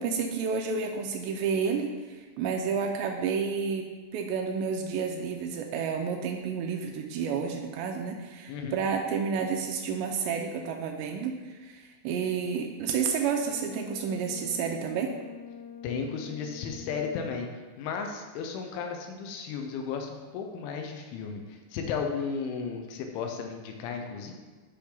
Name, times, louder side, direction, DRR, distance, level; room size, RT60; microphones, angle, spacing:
voice 1, 0.0-3.9 4.1-15.1, right 6 dB, 80° right, 3 dB, 2.6 m, -30 dB
voice 2, 8.5-8.8 15.8-17.5 17.8-24.3, left 5 dB, 85° left, 4 dB, 3.3 m, -34 dB
Brass instrument, 13.2-17.6, left 7 dB, 50° left, 3.9 m, -45 dB
10.0 x 5.8 x 3.9 m, 1.3 s
omnidirectional pair, 5.4 m